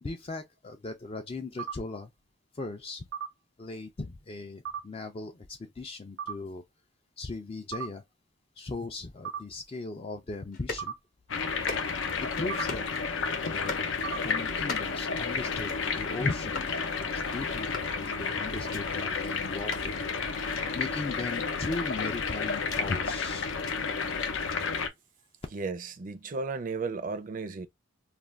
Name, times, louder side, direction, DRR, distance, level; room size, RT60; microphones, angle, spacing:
voice 1, 0.0-2.1 2.5-3.0 3.6-6.6 7.2-8.0 8.6-10.9 12.2-12.9 13.4-13.9 14.2-16.6 17.0-20.0 20.7-23.6, left 3 dB, 30° left, 0.4 m, -38 dB
sound 1, 1.6-1.7 3.1-3.3 4.7-4.8 6.2-6.3 7.7-7.9 9.2-9.4 10.8-10.9 12.5-12.6 14.0-14.2, right 8 dB, 80° right, 0.7 m, -34 dB
sound 2, 10.5-10.9 11.5-12.1 12.5-12.9 13.5-13.9 14.5-15.0 15.5-15.9 16.5-16.7 17.5-18.0 18.5-18.8 19.5-19.9 20.5-20.7 21.5-22.9 23.5-23.8 24.5-24.6, left 4 dB, 45° left, 0.9 m, -40 dB
sound 3, 11.3-24.9, left 5 dB, 75° left, 0.6 m, -31 dB
voice 2, 25.5-27.7, right 4 dB, 45° right, 0.5 m, -34 dB
2.5 x 2.2 x 3.2 m
head